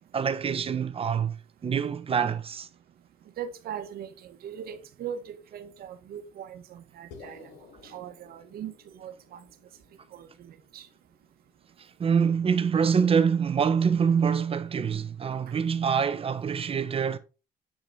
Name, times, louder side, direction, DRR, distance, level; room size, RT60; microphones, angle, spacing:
voice 1, 0.1-1.3 1.6-2.7 12.0-17.2, right 6 dB, 35° right, 1.1 m, -25 dB
voice 2, 3.4-7.5 7.8-9.4 10.1-10.9, right 8 dB, 65° right, 1.5 m, -40 dB
sound 1, 7.1-11.5, left 5 dB, 85° left, 2.8 m, -53 dB
8.7 x 6.0 x 4.2 m
cardioid pair, 110°, 17 cm